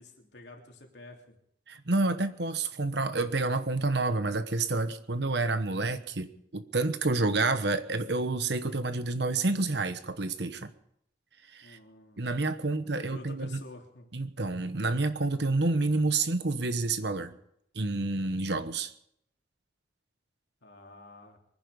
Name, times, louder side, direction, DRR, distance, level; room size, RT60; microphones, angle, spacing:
voice 1, 0.0-1.3 11.6-12.3 12.6-14.1 20.6-21.4, left 2 dB, 70° left, 1 dB, 3.2 m, -49 dB
voice 2, 1.7-10.7 11.5-11.8 12.2-13.6 14.1-17.3 17.7-18.9, right 3 dB, 65° right, 11 dB, 1.2 m, -29 dB
24.0 x 10.5 x 5.2 m, 0.73 s
head